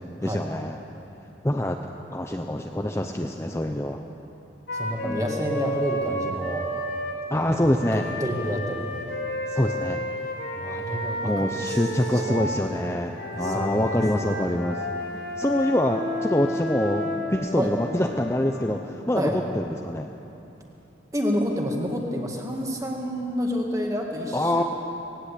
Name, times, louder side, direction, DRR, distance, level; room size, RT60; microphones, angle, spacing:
voice 1, 0.2-0.8 1.4-1.8 2.1-4.0 5.0-5.4 7.3-8.0 9.5-10.0 11.2-14.8 15.4-20.1 24.3-24.6, left 1 dB, 15° left, 3 dB, 0.7 m, -25 dB
Wind instrument woodwind instrument, 4.7-7.2 7.8-12.5 13.1-18.5, equal, 75° left, 4.3 m, -31 dB
voice 2, 4.7-6.7 7.3-9.0 10.5-11.8 12.1-12.8 13.3-14.4 17.6-17.7 19.2-19.4 21.1-24.6, equal, 15° right, 1 dB, 2.2 m, -29 dB
19.0 x 18.0 x 8.4 m, 2.9 s
head